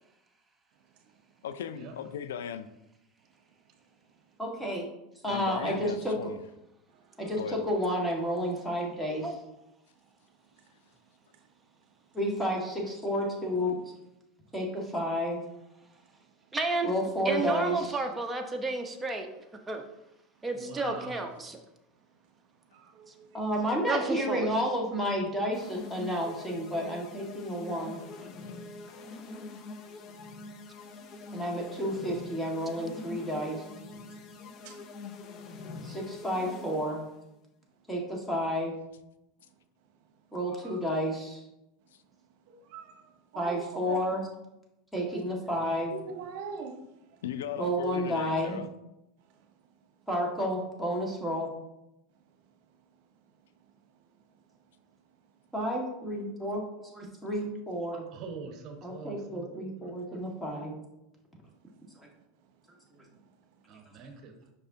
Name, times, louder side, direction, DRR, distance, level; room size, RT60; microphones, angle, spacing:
voice 1, 1.4-2.7 5.2-6.4 7.4-7.6 47.2-48.7, left 8 dB, 90° left, 11 dB, 0.4 m, -37 dB
voice 2, 4.4-4.9 5.2-6.2 7.2-9.3 12.1-13.8 14.5-15.4 16.8-18.0 23.3-28.3 31.3-33.6 35.8-37.0 37.9-38.7 40.3-41.4 43.4-44.2 44.9-45.9 47.6-48.6 50.1-51.5 55.5-58.0 58.8-60.8, equal, 5° left, -1 dB, 1.7 m, -31 dB
voice 3, 6.9-7.3 22.7-23.4 34.6-34.8 40.6-40.8 42.5-43.6 43.9-44.0 45.9-46.8 47.1-47.2 49.4-49.5, right 6 dB, 65° right, 6 dB, 0.9 m, -43 dB
voice 4, 16.5-16.9 17.2-19.3 19.7-19.8 20.4-21.6 23.9-24.5, right 3 dB, 15° right, 3 dB, 0.9 m, -31 dB
voice 5, 20.6-21.2 58.1-59.5 63.7-64.3, right 4 dB, 45° right, 5 dB, 1.2 m, -43 dB
sound 1, 25.5-37.1, left 3 dB, 45° left, 0.7 m, -44 dB
6.8 x 5.3 x 2.8 m, 0.88 s
supercardioid pair, 110°, 0 cm